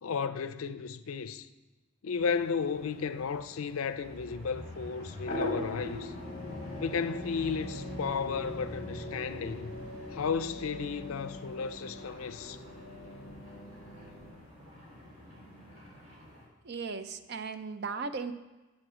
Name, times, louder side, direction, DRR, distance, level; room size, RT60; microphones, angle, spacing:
voice 1, 0.0-1.5 2.0-6.1 6.8-9.7 10.1-12.6, left 5 dB, 80° left, 0.5 m, -34 dB
sound 1, 2.2-16.4, equal, 30° right, 3.9 m, -47 dB
sound 2, 5.3-14.3, left 1 dB, 40° left, 1.2 m, -41 dB
voice 2, 16.6-18.3, right 4 dB, 50° right, 0.5 m, -37 dB
8.3 x 7.7 x 6.2 m
head